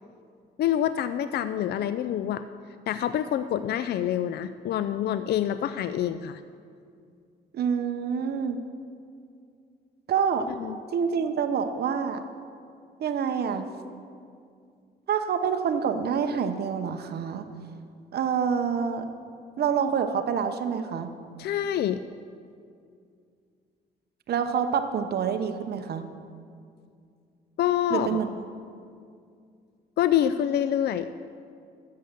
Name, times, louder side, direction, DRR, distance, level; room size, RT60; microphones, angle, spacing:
voice 1, 0.6-2.4 2.9-6.4 10.6-10.8 21.4-22.0 27.6-28.2 30.0-31.1, left 10 dB, 65° left, 12 dB, 0.4 m, -26 dB
voice 2, 7.5-8.6 10.1-10.5 10.9-12.2 13.0-13.7 15.1-17.4 18.1-19.0 19.6-21.1 24.3-26.0 27.9-28.3, right 7 dB, 65° right, 7 dB, 0.9 m, -27 dB
12.5 x 8.1 x 6.7 m, 2.3 s
cardioid pair, 95°, 18 cm